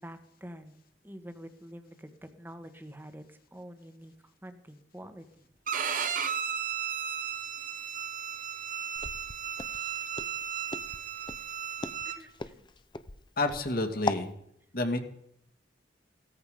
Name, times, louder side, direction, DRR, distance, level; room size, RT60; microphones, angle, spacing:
voice 1, 0.0-5.5 12.0-12.7, equal, 10° right, 8 dB, 1.5 m, -47 dB
Bowed string instrument, 5.7-12.2, right 8 dB, 50° right, 1.3 m, -34 dB
Walk footsteps, 9.0-14.3, left 3 dB, 25° left, 0.7 m, -38 dB
voice 2, 13.4-14.3 14.7-15.0, left 2 dB, 55° left, 5 dB, 2.3 m, -29 dB
17.0 x 14.0 x 5.1 m, 0.74 s
head